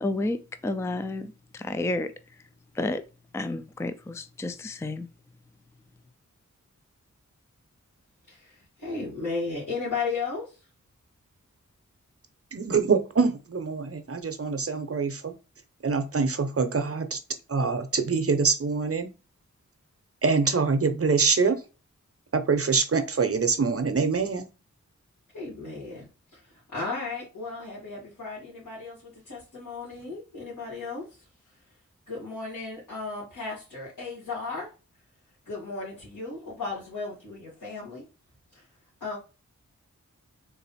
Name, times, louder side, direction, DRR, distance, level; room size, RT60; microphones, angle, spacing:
voice 1, 0.0-2.1 2.7-3.0 3.3-5.1, left 2 dB, 10° left, 0.4 m, -31 dB
voice 2, 8.3-10.7 25.3-26.0 26.3-31.6 32.1-34.7 35.5-38.0 38.5-38.7 39.0-39.2, left 4 dB, 75° left, 2.3 m, -35 dB
voice 3, 12.5-15.3 15.8-17.2 17.5-19.1 20.2-21.6 22.3-24.4, right 5 dB, 45° right, 0.7 m, -25 dB
3.9 x 2.6 x 4.2 m
wide cardioid pair, 55°, 31 cm